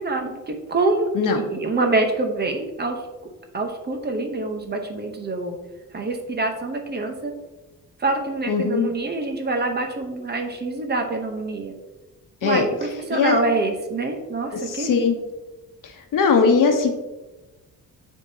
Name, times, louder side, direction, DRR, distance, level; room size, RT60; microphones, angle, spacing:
voice 1, 0.0-1.1 1.4-3.0 3.5-5.6 5.9-7.3 8.0-11.7 12.4-15.0, right 3 dB, 30° right, 4 dB, 0.8 m, -25 dB
voice 2, 8.5-8.9 12.4-12.7 13.1-13.4 14.7-15.2 16.1-16.9, left 5 dB, 65° left, 4 dB, 1.0 m, -19 dB
9.6 x 3.7 x 2.7 m, 1.1 s
cardioid pair, 125°, 35 cm